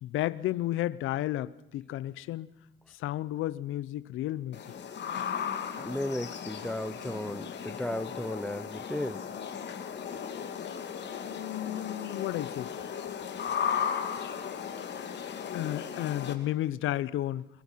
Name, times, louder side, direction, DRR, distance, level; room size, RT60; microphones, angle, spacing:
voice 1, 0.0-2.5 2.9-4.6 11.1-12.7 15.5-17.5, left 14 dB, 90° left, 19 dB, 0.8 m, -32 dB
sound 1, 4.5-16.3, left 7 dB, 60° left, 2.9 m, -36 dB
voice 2, 5.8-9.3, left 1 dB, 5° left, 16 dB, 1.0 m, -35 dB
25.5 x 22.5 x 5.8 m, 0.85 s
cardioid pair, 90°, 20 cm